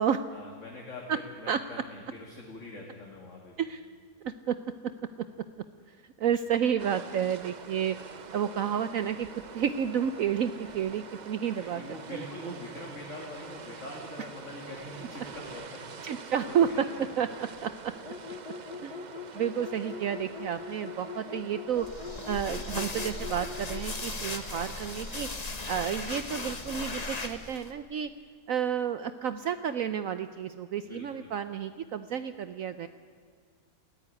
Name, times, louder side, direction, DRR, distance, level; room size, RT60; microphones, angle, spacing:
voice 1, 0.3-3.6 11.6-15.8 16.4-17.0 30.8-31.3, left 2 dB, 50° left, -1 dB, 2.8 m, -44 dB
voice 2, 4.2-4.6 6.2-8.0 8.3-9.3 9.5-12.5 16.0-16.9 17.2-17.9 18.8-19.0 19.3-21.9 22.3-25.3 25.7-28.1 28.5-32.9, right 8 dB, 65° right, 12 dB, 1.0 m, -30 dB
sound 1, 6.8-25.4, right 5 dB, 40° right, 0.6 m, -46 dB
sound 2, 18.0-23.9, left 6 dB, 75° left, 1.8 m, -42 dB
sound 3, 21.8-27.7, left 2 dB, 25° left, 1.4 m, -37 dB
19.0 x 14.5 x 10.0 m, 2.1 s
omnidirectional pair, 1.7 m